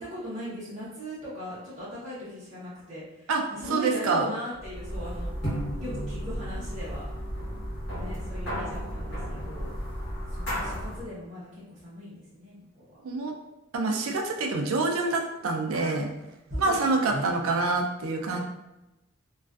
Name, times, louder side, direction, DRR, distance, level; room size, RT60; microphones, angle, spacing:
voice 1, 0.0-5.3 5.8-7.1 8.0-9.7 10.3-12.9 15.7-16.0 16.5-17.4 18.2-18.4, equal, 30° right, -11 dB, 0.7 m, -39 dB
voice 2, 3.7-4.2 13.0-13.3 13.7-16.1 16.6-18.4, right 3 dB, 80° right, 2 dB, 0.4 m, -26 dB
sound 1, 4.6-11.1, equal, 50° left, 1.1 m, -33 dB
2.4 x 2.3 x 2.3 m, 0.94 s
head